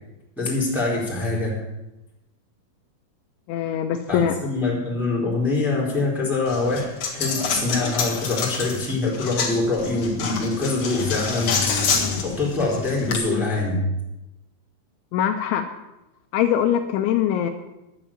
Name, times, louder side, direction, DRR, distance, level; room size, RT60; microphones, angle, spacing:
voice 1, 0.4-1.6 4.1-6.9 7.1-11.5 12.2-13.9, left 3 dB, ahead, -3 dB, 2.9 m, -24 dB
voice 2, 3.5-4.3 15.1-15.6 16.3-17.5, left 10 dB, 85° left, 6 dB, 2.9 m, -22 dB
Coin (dropping), 6.5-13.2, left 5 dB, 60° left, 1.7 m, -27 dB
11.0 x 8.8 x 8.7 m, 0.95 s
omnidirectional pair, 5.8 m